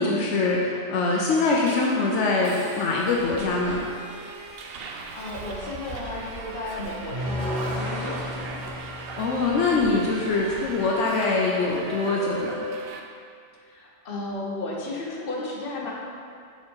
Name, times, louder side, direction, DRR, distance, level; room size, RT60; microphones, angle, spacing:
voice 1, 0.0-3.9 9.2-12.6, left 3 dB, 80° left, -2 dB, 1.0 m, -23 dB
Subway metro underground, 1.3-13.0, right 3 dB, 65° right, 0.7 m, -39 dB
voice 2, 5.1-8.6 13.7-15.9, left 2 dB, 55° left, -3 dB, 1.1 m, -34 dB
sound 1, 7.1-10.3, left 1 dB, 85° right, 1.5 m, -33 dB
6.4 x 4.8 x 3.7 m, 2.3 s
omnidirectional pair, 1.2 m